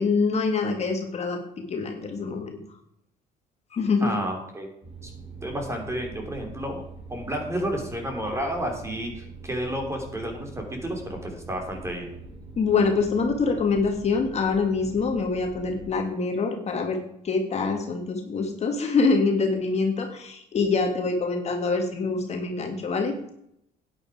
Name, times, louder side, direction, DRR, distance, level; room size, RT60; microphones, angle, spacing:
voice 1, 0.0-1.4 1.7-2.6 3.7-4.1 12.6-17.0 17.2-23.1, left 4 dB, 40° left, 3 dB, 1.9 m, -25 dB
voice 2, 4.0-4.7 5.0-5.1 5.4-6.8 7.1-12.1, equal, 15° right, 3 dB, 3.3 m, -31 dB
sound 1, 4.8-15.9, right 4 dB, 35° right, 3.6 m, -43 dB
11.5 x 9.4 x 4.9 m, 0.74 s
cardioid pair, 110°, 17 cm